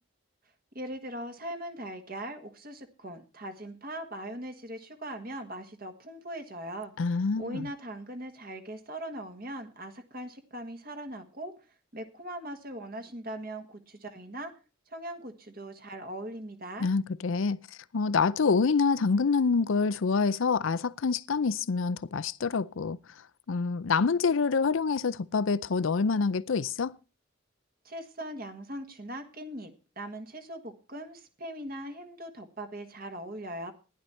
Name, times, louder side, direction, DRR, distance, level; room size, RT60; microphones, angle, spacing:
voice 1, 0.7-6.9 7.4-14.5 14.9-16.9 27.8-33.7, right 1 dB, 45° right, 1.6 m, -40 dB
voice 2, 7.0-7.7 16.8-17.6 17.9-23.0 23.5-26.9, left 4 dB, 70° left, 0.5 m, -26 dB
14.5 x 11.0 x 4.3 m
head